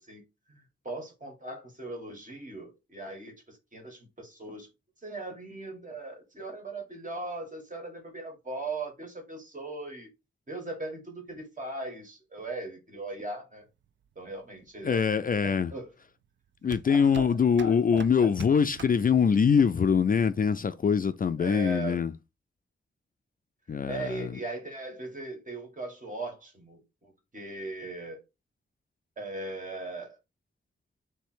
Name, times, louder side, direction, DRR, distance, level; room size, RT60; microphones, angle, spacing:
voice 1, 0.0-4.7 5.0-10.1 10.5-13.6 14.2-15.0 15.4-15.9 16.9-17.3 17.6-18.3 21.4-22.0 23.7-28.2 29.2-30.2, right 2 dB, 40° right, 1.9 m, -39 dB
sound 1, 13.6-19.6, right 8 dB, 60° right, 0.4 m, -47 dB
voice 2, 14.8-15.7 16.6-22.1 23.7-24.3, left 6 dB, 40° left, 0.4 m, -24 dB
3.3 x 3.2 x 4.5 m
wide cardioid pair, 75°, 21 cm